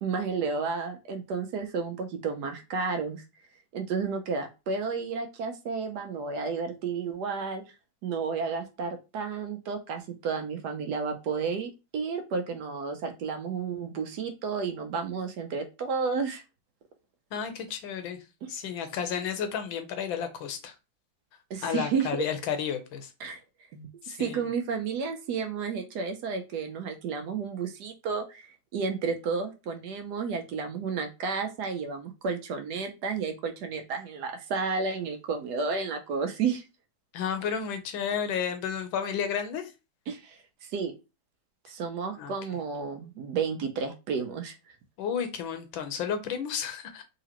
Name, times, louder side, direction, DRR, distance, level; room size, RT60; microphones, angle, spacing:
voice 1, 0.0-3.2 3.7-7.6 8.0-16.4 21.5-22.3 23.2-23.4 23.7-23.9 24.2-36.6 40.1-40.9 41.7-44.5, right 5 dB, 70° right, 1.0 m, -32 dB
voice 2, 17.3-18.2 18.5-20.7 21.6-23.1 24.0-24.4 37.1-39.7 42.2-42.3 45.0-47.0, left 7 dB, 90° left, 1.5 m, -32 dB
3.9 x 2.8 x 2.9 m
omnidirectional pair, 2.1 m